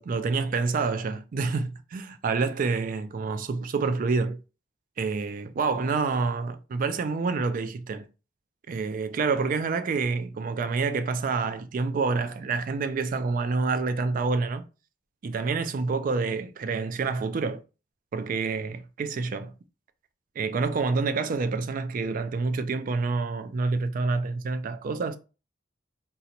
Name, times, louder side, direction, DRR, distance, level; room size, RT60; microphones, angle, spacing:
voice 1, 0.0-4.4 5.0-8.1 8.7-14.6 15.2-17.6 18.1-19.5 20.4-25.2, right 4 dB, 50° right, 0.3 m, -28 dB
3.8 x 2.1 x 2.8 m
head